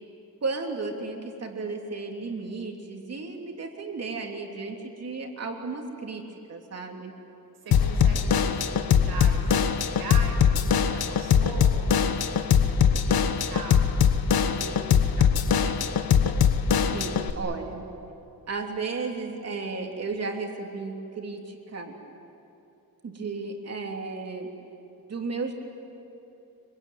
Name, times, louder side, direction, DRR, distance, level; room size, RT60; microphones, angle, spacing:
voice 1, 0.4-7.1 16.9-17.8 18.5-21.9 23.0-24.5 25.1-25.5, right 4 dB, 45° right, 2 dB, 3.3 m, -34 dB
voice 2, 7.6-13.8 14.3-16.0, right 3 dB, 85° right, 2 dB, 5.5 m, -41 dB
Drum kit / Drum, 7.7-17.3, left 7 dB, 80° left, 1.4 m, -22 dB
26.0 x 24.0 x 9.5 m, 2.8 s
wide cardioid pair, 140°, 36 cm